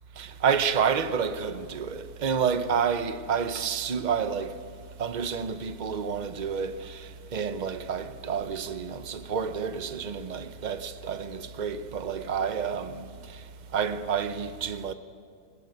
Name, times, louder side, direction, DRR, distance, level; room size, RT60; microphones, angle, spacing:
voice 1, 0.2-4.6 5.0-13.4 13.7-14.9, right 6 dB, 50° right, 0.5 m, -29 dB
22.0 x 19.5 x 9.4 m
omnidirectional pair, 2.0 m